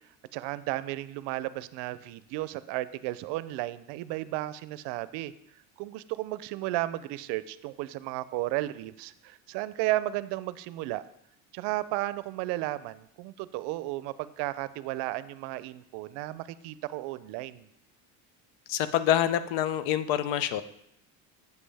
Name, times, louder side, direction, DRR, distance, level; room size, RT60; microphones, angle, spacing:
voice 1, 0.3-5.3 5.8-11.0 11.5-17.7, right 17 dB, 75° right, 16 dB, 0.5 m, -34 dB
voice 2, 18.7-20.6, left 11 dB, 80° left, 14 dB, 0.7 m, -26 dB
8.2 x 7.2 x 3.4 m, 0.74 s
cardioid pair, 125°, 42 cm